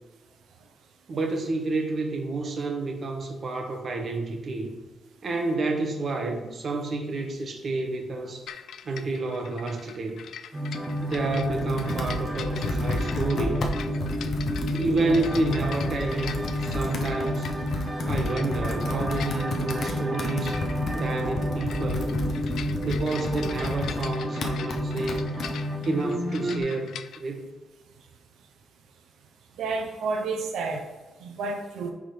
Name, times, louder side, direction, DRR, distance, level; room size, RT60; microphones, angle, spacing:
voice 1, 1.1-4.7 5.2-8.5 8.8-10.2 11.0-13.7 14.7-16.3 16.6-17.5 18.1-20.6 20.9-22.2 22.8-25.3 25.8-27.5, right 3 dB, 40° right, 3 dB, 0.9 m, -29 dB
sound 1, 8.5-27.2, left 8 dB, 70° left, 0.3 m, -43 dB
sound 2, 10.5-26.6, equal, 15° right, 0.6 m, -31 dB
Computer keyboard, 10.9-25.5, left 3 dB, 50° left, 0.8 m, -33 dB
voice 2, 29.6-30.8 31.2-31.9, right 3 dB, 90° right, 4 dB, 0.7 m, -30 dB
10.0 x 3.6 x 3.2 m, 1.2 s
cardioid pair, 155°, 0 cm